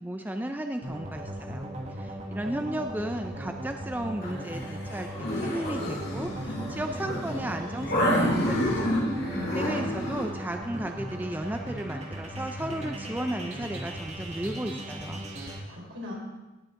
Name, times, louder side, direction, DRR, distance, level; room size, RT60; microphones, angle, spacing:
voice 1, 0.0-9.0 9.5-15.3, right 1 dB, 10° right, 5 dB, 0.4 m, -34 dB
sound 1, 0.8-15.6, equal, 35° right, 1.6 m, -38 dB
sound 2, 4.2-10.3, equal, 50° left, 2.5 m, -29 dB
voice 2, 9.3-9.9 15.4-16.1, left 1 dB, 80° right, -3 dB, 4.3 m, -39 dB
17.5 x 7.9 x 3.7 m, 1.1 s
head